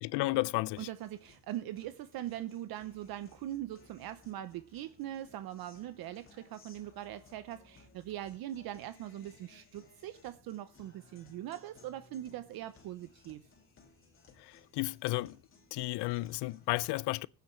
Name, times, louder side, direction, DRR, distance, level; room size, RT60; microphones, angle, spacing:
voice 1, 0.0-0.9 14.4-15.4 15.7-17.3, left 20 dB, 70° left, 0.5 m, -33 dB
Guitar, 0.7-16.7, left 4 dB, 30° left, 2.7 m, -62 dB
voice 2, 0.8-13.4, right 12 dB, 55° right, 0.7 m, -41 dB
16.5 x 9.3 x 3.1 m
cardioid pair, 150°, 43 cm